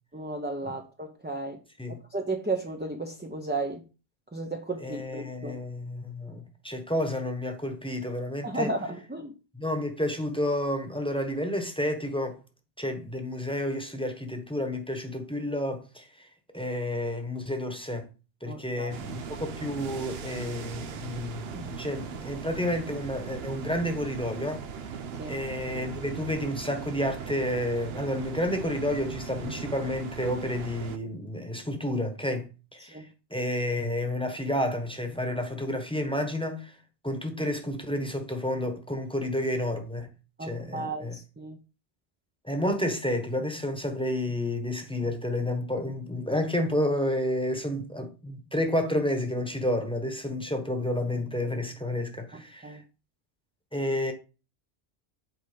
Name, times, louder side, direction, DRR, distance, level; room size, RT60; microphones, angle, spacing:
voice 1, 0.1-1.6 1.9-3.8 4.3-5.6 8.4-9.3 18.5-19.0 25.2-25.4 32.9-33.0 40.4-41.6 52.3-52.8, right 2 dB, 10° right, 0.7 m, -34 dB
voice 2, 4.8-8.7 9.5-12.4 12.8-16.3 16.5-18.1 18.4-24.6 25.2-33.0 33.3-36.8 37.0-40.1 40.4-41.2 42.4-52.8 53.7-54.1, left 1 dB, 5° left, 1.2 m, -30 dB
sound 1, 18.9-31.0, right 6 dB, 70° right, 1.0 m, -39 dB
8.2 x 4.4 x 5.2 m
omnidirectional pair, 1.1 m